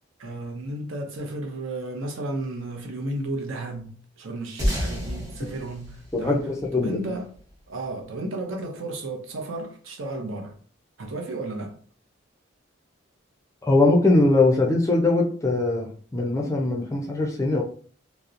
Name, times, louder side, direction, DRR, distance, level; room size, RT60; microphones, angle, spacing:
voice 1, 0.2-6.4 6.7-7.3 7.7-10.6 11.0-11.8, right 2 dB, 80° right, 0.6 m, -33 dB
sound 1, 4.6-7.4, equal, 15° right, 0.7 m, -30 dB
voice 2, 6.1-7.2 13.6-17.6, left 2 dB, 15° left, 0.3 m, -21 dB
2.7 x 2.0 x 2.4 m
head